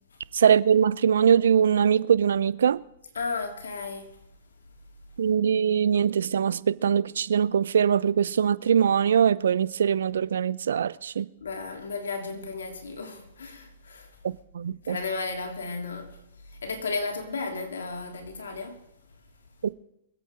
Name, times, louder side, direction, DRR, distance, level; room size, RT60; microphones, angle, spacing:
voice 1, 0.3-2.8 5.2-11.3 14.2-15.0 19.6-19.7, right 8 dB, 75° right, 0.6 m, -22 dB
voice 2, 3.1-4.1 11.4-14.1 14.8-16.2 16.6-18.8, left 4 dB, 80° left, 3.3 m, -34 dB
24.5 x 8.5 x 5.0 m
hypercardioid pair, 125°, 0 cm